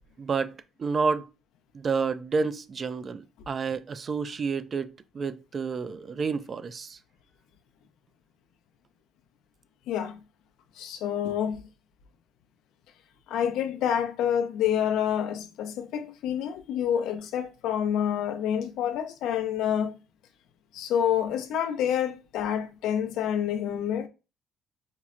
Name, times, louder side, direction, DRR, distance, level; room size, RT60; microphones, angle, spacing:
voice 1, 0.2-1.3 1.7-7.0, right 5 dB, 40° right, 0.3 m, -30 dB
voice 2, 9.9-10.2 10.8-11.7 13.3-20.0 20.7-24.1, left 9 dB, 80° left, 0.4 m, -28 dB
4.4 x 2.0 x 2.4 m
cardioid pair, 90°, 0 cm